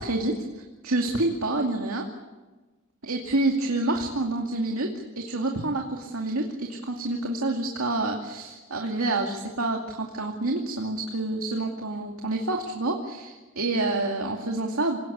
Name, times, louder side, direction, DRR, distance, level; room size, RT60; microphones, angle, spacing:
voice 1, 0.0-2.1 3.0-15.0, right 2 dB, 75° right, 2 dB, 2.5 m, -28 dB
27.5 x 18.5 x 8.7 m, 1.2 s
head